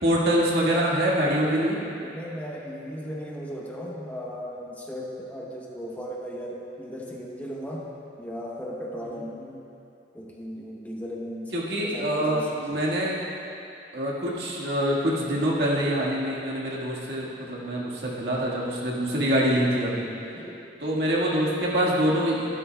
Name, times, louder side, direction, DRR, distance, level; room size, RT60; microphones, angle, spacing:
voice 1, 0.0-1.8 11.5-13.2 13.9-20.1 20.8-22.5, equal, 70° right, -5 dB, 1.7 m, -25 dB
voice 2, 2.0-7.8 8.2-9.6 10.1-11.5 11.8-12.8 20.3-20.6, equal, 10° left, -3 dB, 0.9 m, -36 dB
12.5 x 12.0 x 2.3 m, 2.8 s
head